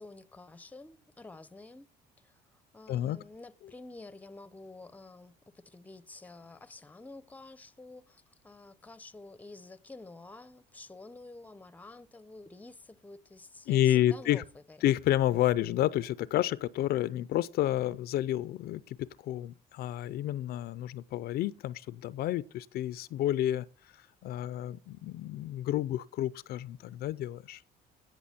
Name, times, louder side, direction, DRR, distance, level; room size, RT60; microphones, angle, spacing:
voice 1, 0.0-1.9 2.2-14.8, left 2 dB, 10° left, 0.6 m, -50 dB
voice 2, 13.7-14.4 14.8-23.7 24.2-27.6, left 13 dB, 65° left, 0.5 m, -30 dB
17.0 x 6.0 x 4.3 m
cardioid pair, 110°, 17 cm